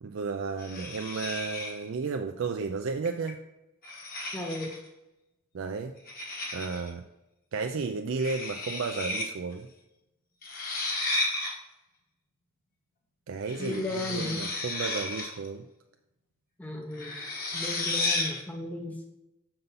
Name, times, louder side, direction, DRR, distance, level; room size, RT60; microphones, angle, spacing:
voice 1, 0.0-3.4 5.5-6.0 6.5-7.0 7.5-9.7 13.3-15.6, right 4 dB, 60° right, 5 dB, 0.4 m, -33 dB
sound 1, 0.6-1.9 3.1-3.3 3.8-4.9 6.1-6.9 8.2-9.3 9.5-9.6 10.4-11.6 13.5-15.5 16.9-18.4, left 2 dB, 40° left, 1.2 m, -33 dB
voice 2, 4.3-4.7 13.6-14.4 16.6-17.1 17.5-19.0, left 1 dB, 5° left, 1 dB, 0.5 m, -35 dB
6.7 x 5.4 x 4.0 m, 0.94 s
head